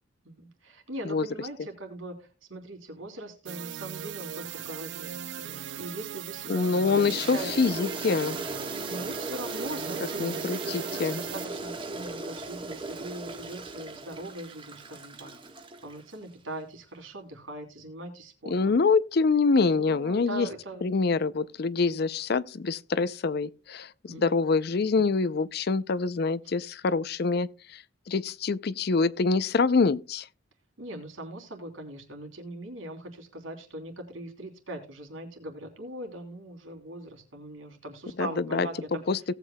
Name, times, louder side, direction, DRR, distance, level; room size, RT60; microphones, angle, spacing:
voice 1, 0.2-7.5 8.9-15.3 15.8-18.7 19.8-21.2 24.1-24.4 24.9-25.1 26.4-26.5 30.8-39.0, right 1 dB, 80° right, 3.1 m, -41 dB
sound 1, 3.4-11.4, right 9 dB, 60° right, 0.4 m, -39 dB
voice 2, 6.5-8.4 10.2-11.2 18.5-20.5 20.8-30.3 38.2-38.7 39.1-39.2, left 4 dB, 50° left, 0.5 m, -25 dB
Toilet flush, 6.8-16.2, right 2 dB, 25° right, 1.3 m, -38 dB
18.0 x 8.2 x 2.2 m
head